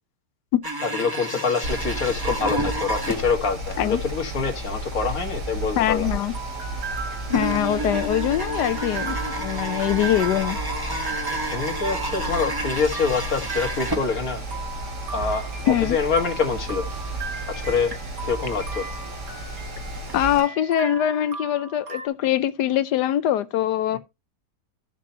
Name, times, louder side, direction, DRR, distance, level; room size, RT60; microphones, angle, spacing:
sound 1, 0.6-3.7 4.0-4.1 4.6-4.7 5.4-5.5 7.3-14.7 14.9-15.0 15.8-15.9 16.4-16.6 17.0-18.0 18.4-18.8 20.1-20.2 20.4-20.5, right 2 dB, 15° right, 1.2 m, -31 dB
voice 1, 0.8-6.2 11.3-14.4 15.1-16.8 17.5-17.9 18.2-18.9, left 5 dB, 60° left, 2.0 m, -25 dB
Mechanical fan, 1.6-20.4, right 1 dB, 80° right, 2.7 m, -33 dB
sound 2, 5.4-22.1, right 4 dB, 60° right, 2.0 m, -37 dB
voice 2, 5.8-6.3 7.3-10.6 15.7-16.0 20.1-24.0, left 11 dB, 90° left, 1.3 m, -23 dB
14.0 x 6.2 x 2.7 m
omnidirectional pair, 1.7 m